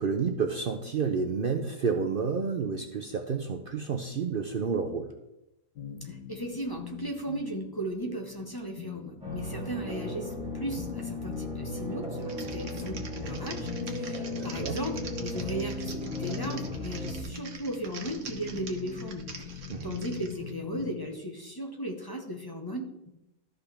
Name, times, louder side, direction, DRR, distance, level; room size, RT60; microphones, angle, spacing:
voice 1, 0.0-5.1 14.3-14.8 19.7-19.9, right 5 dB, 80° right, 5 dB, 0.4 m, -30 dB
sound 1, 5.8-21.2, left 9 dB, 70° left, 1.2 m, -44 dB
voice 2, 6.0-23.1, right 1 dB, 15° left, 2 dB, 1.0 m, -36 dB
sound 2, 9.2-17.2, left 2 dB, 5° right, 2.4 m, -36 dB
Typing, 12.2-20.4, right 4 dB, 50° right, 1.3 m, -45 dB
13.5 x 5.7 x 3.4 m, 0.91 s
omnidirectional pair, 1.8 m